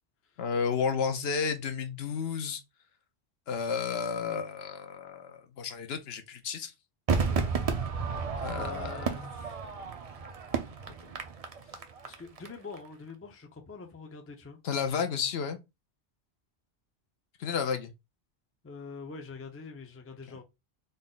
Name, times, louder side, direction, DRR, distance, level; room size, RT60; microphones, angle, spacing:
voice 1, 0.4-2.6 3.5-6.7 8.4-9.0 14.6-15.6 17.4-17.9, left 6 dB, 70° left, 0.9 m, -32 dB
Crowd / Fireworks, 7.1-12.5 12.7-12.8, right 5 dB, 45° right, 0.5 m, -32 dB
voice 2, 8.5-9.5 10.9-11.1 11.5-14.6 18.6-20.4, left 4 dB, 20° left, 0.4 m, -45 dB
3.9 x 2.1 x 3.7 m
omnidirectional pair, 1.1 m